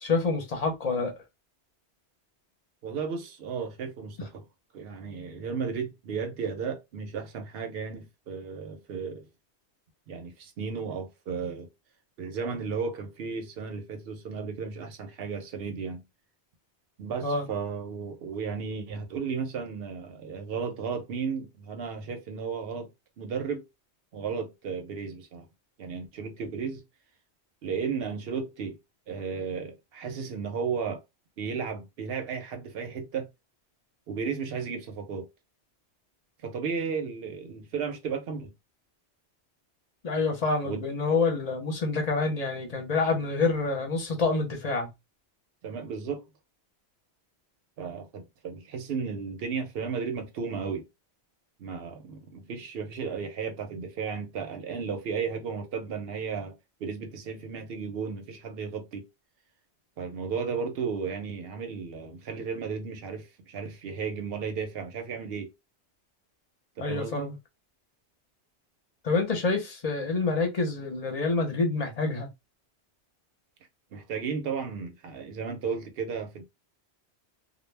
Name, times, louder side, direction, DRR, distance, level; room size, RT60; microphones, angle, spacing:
voice 1, 0.0-1.1 17.2-17.5 40.0-44.9 66.8-67.3 69.0-72.3, left 3 dB, 40° left, 0.7 m, -27 dB
voice 2, 2.8-4.4 4.7-9.3 10.1-11.7 12.2-16.0 17.0-22.9 23.2-23.7 24.1-25.4 25.8-26.8 27.6-28.8 29.1-31.0 31.4-33.3 34.1-35.3 36.4-38.5 40.6-40.8 45.6-46.3 47.8-50.8 51.6-56.6 56.8-59.1 60.0-65.5 66.8-67.3 73.9-76.4, right 5 dB, 65° right, 0.8 m, -34 dB
2.2 x 2.1 x 3.2 m
omnidirectional pair, 1.1 m